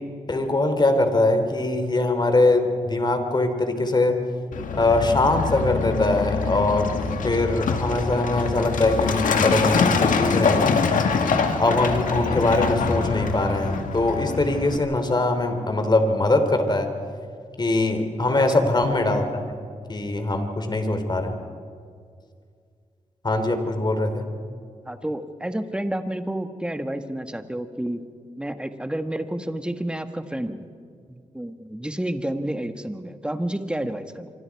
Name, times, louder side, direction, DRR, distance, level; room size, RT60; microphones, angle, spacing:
voice 1, 0.3-4.2 4.7-7.0 7.2-10.8 11.6-16.9 17.6-19.4 19.9-21.3 23.2-24.3, left 2 dB, 35° left, 7 dB, 3.1 m, -22 dB
Truck, 4.5-14.8, left 5 dB, 85° left, 1.8 m, -24 dB
voice 2, 24.8-28.0 28.4-30.6 31.1-34.3, right 1 dB, 5° right, 8 dB, 1.5 m, -30 dB
25.5 x 25.0 x 4.7 m, 2.2 s
cardioid pair, 75°, 13 cm